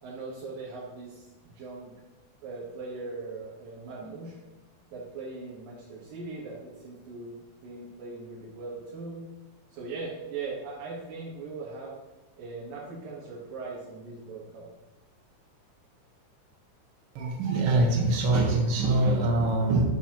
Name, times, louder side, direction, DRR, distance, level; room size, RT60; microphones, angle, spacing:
voice 1, 0.0-1.9 2.4-4.4 4.9-9.2 9.7-11.9 12.4-14.6, right 3 dB, 85° right, -7 dB, 3.1 m, -40 dB
voice 2, 17.1-19.8, right 2 dB, 60° right, 1 dB, 1.5 m, -24 dB
7.7 x 6.9 x 2.9 m, 1.1 s
omnidirectional pair, 3.9 m